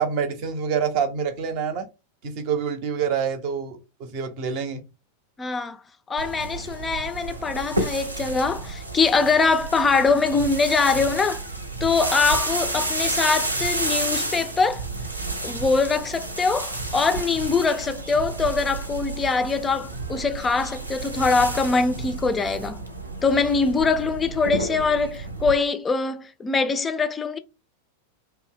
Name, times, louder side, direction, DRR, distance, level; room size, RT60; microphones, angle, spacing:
voice 1, 0.0-1.9 2.2-4.9, right 7 dB, 45° right, 0.7 m, -26 dB
voice 2, 5.4-5.8 6.1-11.4 11.8-14.9 15.4-22.8 23.2-27.4, left 4 dB, 15° left, 0.4 m, -23 dB
sound 1, 6.2-25.5, right 2 dB, 85° right, 0.7 m, -30 dB
2.7 x 2.1 x 3.5 m
figure-of-eight pair, 90°, 0 cm